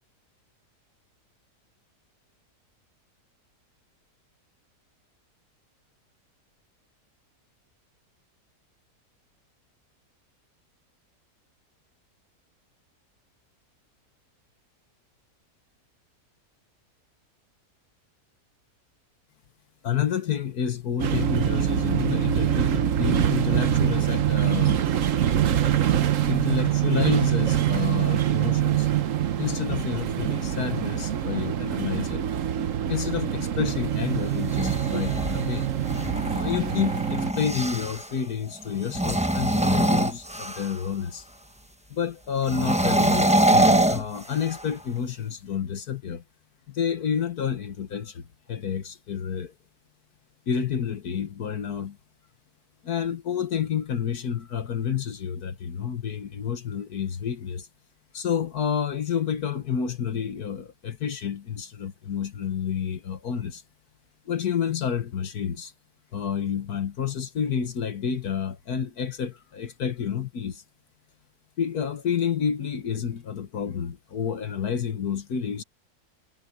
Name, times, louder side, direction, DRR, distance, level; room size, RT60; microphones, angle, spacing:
voice 1, 19.8-24.8 26.3-28.9 29.4-32.3 32.9-35.7 36.3-41.3 41.9-46.2 46.7-49.5 50.5-52.0 52.8-57.7 58.1-63.6 64.3-65.7 66.1-70.6 71.6-75.6, left 8 dB, 70° left, 1.8 m, -29 dB
sound 1, 21.0-37.3, right 10 dB, 60° right, 1.2 m, -24 dB
sound 2, 34.3-38.1 38.8-40.9 42.4-44.7, right 1 dB, 5° right, 1.0 m, -24 dB
omnidirectional pair, 1.7 m